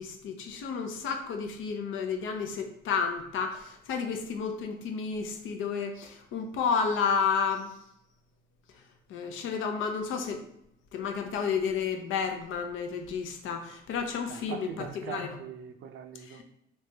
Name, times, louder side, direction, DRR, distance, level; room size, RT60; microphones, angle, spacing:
voice 1, 0.0-7.7 9.1-10.4 10.9-15.4 16.3-16.4, left 6 dB, 80° left, 4 dB, 0.6 m, -31 dB
voice 2, 14.3-16.4, right 8 dB, 80° right, 6 dB, 0.5 m, -42 dB
3.2 x 2.9 x 3.3 m, 0.78 s
cardioid pair, 90°, 20 cm